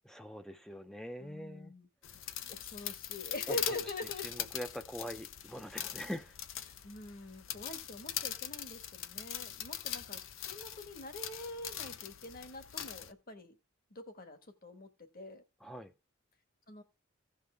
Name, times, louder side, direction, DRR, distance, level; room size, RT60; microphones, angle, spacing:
voice 1, 0.0-1.7 3.5-3.6 4.2-6.4 7.5-7.6 15.6-15.9, equal, ahead, 0.5 m, -43 dB
voice 2, 1.2-1.9 2.5-4.5 6.7-13.6 13.9-15.4 16.7-16.8, left 2 dB, 45° left, 1.4 m, -45 dB
sound 1, 2.0-13.1, left 10 dB, 65° left, 0.7 m, -42 dB
16.0 x 5.5 x 3.4 m
head